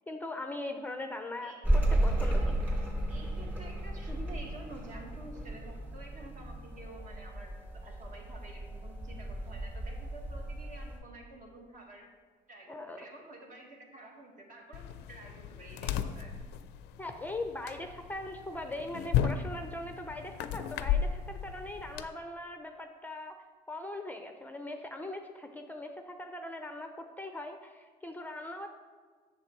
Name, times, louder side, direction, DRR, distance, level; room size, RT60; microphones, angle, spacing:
voice 1, 0.1-2.6 12.7-13.0 17.0-23.4 23.7-28.7, left 2 dB, 10° left, 5 dB, 0.5 m, -40 dB
sound 1, 1.6-11.0, right 1 dB, 10° right, 2.2 m, -33 dB
voice 2, 2.2-2.6 3.1-12.1 12.5-16.3, right 2 dB, 50° right, 1 dB, 1.7 m, -50 dB
sound 2, 14.7-22.1, left 8 dB, 90° left, 0.4 m, -35 dB
7.7 x 6.7 x 4.5 m, 1.5 s
cardioid pair, 110°, 17 cm